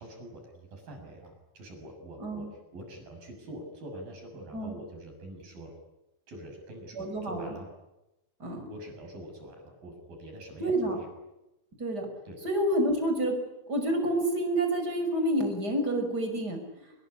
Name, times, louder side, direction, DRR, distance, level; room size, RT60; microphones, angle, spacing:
voice 1, 0.0-5.7 6.3-7.7 8.7-11.1 12.2-12.4, right 1 dB, 45° right, 3 dB, 8.4 m, -45 dB
voice 2, 7.0-7.5 8.4-8.7 10.6-11.0 11.8-12.1 12.4-13.4 13.7-16.9, right 1 dB, 20° right, 5 dB, 6.0 m, -28 dB
26.5 x 21.5 x 10.0 m, 0.95 s
omnidirectional pair, 5.8 m